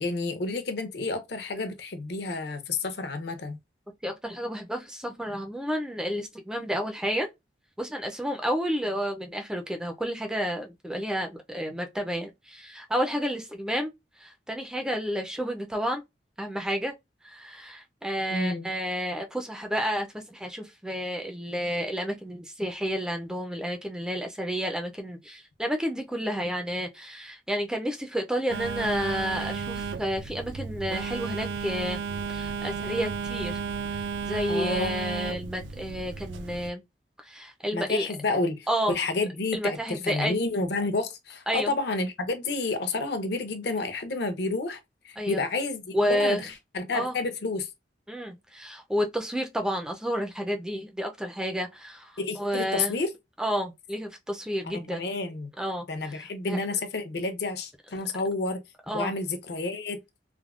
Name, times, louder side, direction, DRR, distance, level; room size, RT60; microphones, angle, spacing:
voice 1, 0.0-3.6 18.3-18.7 34.5-34.9 37.7-44.8 45.0-47.7 52.2-53.1 54.6-55.5 55.9-58.6 58.9-60.0, left 3 dB, 65° left, 0.6 m, -30 dB
voice 2, 4.0-7.3 7.8-13.9 14.2-16.0 16.4-16.9 17.2-32.0 32.3-33.6 33.9-36.8 37.2-38.1 38.7-39.0 39.5-40.4 41.5-41.7 45.2-45.4 45.9-46.4 46.9-47.2 48.1-53.0 53.4-55.0 55.6-56.2 56.5-56.6 58.9-59.1, equal, 5° right, 0.3 m, -30 dB
Telephone, 28.5-36.7, right 5 dB, 85° right, 0.3 m, -33 dB
3.4 x 2.0 x 2.3 m
head